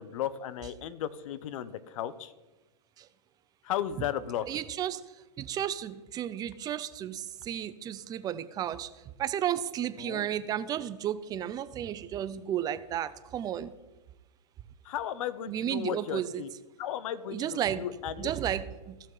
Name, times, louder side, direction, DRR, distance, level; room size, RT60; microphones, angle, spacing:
voice 1, 0.0-2.3 3.6-4.5 10.0-10.3 14.8-16.5 16.8-18.3, left 10 dB, 50° left, 15 dB, 0.8 m, -35 dB
voice 2, 4.5-5.0 5.4-8.9 9.2-13.7 15.5-16.4 17.3-17.9 18.2-18.9, right 10 dB, 20° right, 13 dB, 0.5 m, -33 dB
16.0 x 6.1 x 3.8 m, 1.1 s
hypercardioid pair, 125°, 21 cm